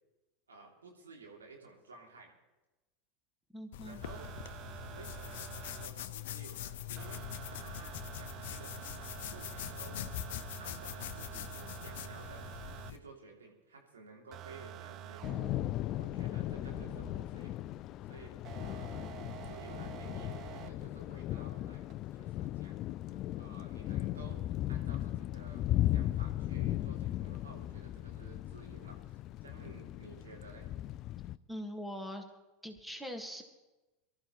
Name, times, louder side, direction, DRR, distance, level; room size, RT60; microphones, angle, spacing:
voice 1, 0.5-2.3 3.8-4.3 4.9-10.2 10.6-12.5 12.8-15.5 15.9-17.6 18.0-24.4 24.7-30.7, right 3 dB, 80° right, -1 dB, 2.8 m, -54 dB
voice 2, 3.5-4.0 31.5-32.2 32.6-33.4, equal, 5° right, 5 dB, 1.8 m, -42 dB
sound 1, 3.7-13.0, left 12 dB, 60° left, 0.8 m, -43 dB
sound 2, 4.0-5.9 7.0-12.9 14.3-17.3 18.4-20.7 21.9-22.0, right 12 dB, 40° right, 0.5 m, -48 dB
Thunder / Rain, 15.2-31.4, left 14 dB, 45° left, 0.4 m, -37 dB
24.0 x 12.5 x 3.1 m, 1.1 s
figure-of-eight pair, 85°, 0 cm